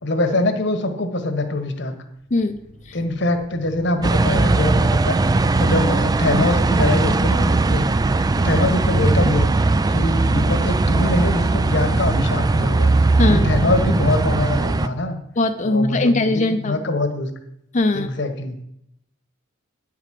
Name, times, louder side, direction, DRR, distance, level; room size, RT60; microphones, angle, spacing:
voice 1, 0.0-2.0 2.9-7.8 8.1-9.5 9.9-12.9 13.3-15.2 15.6-17.3 17.9-18.6, left 2 dB, 65° left, 6 dB, 1.3 m, -23 dB
sound 1, 2.2-12.0, equal, 45° right, 1.7 m, -47 dB
sound 2, 4.0-14.9, right 3 dB, 20° right, 0.3 m, -19 dB
voice 2, 15.4-16.8 17.7-18.1, left 2 dB, 40° left, 7 dB, 0.6 m, -20 dB
10.5 x 4.9 x 7.5 m, 0.79 s
head